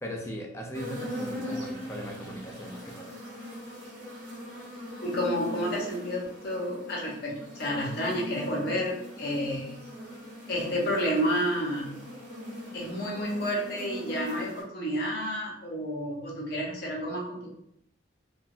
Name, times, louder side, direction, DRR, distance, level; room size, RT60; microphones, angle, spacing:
voice 1, 0.0-3.1, equal, 15° left, 0 dB, 0.4 m, -38 dB
sound 1, 0.7-14.6, left 1 dB, 45° right, 0.8 m, -40 dB
voice 2, 5.0-9.8 10.5-12.0 12.7-17.5, equal, 55° left, -3 dB, 0.8 m, -30 dB
3.0 x 2.2 x 2.4 m, 0.73 s
head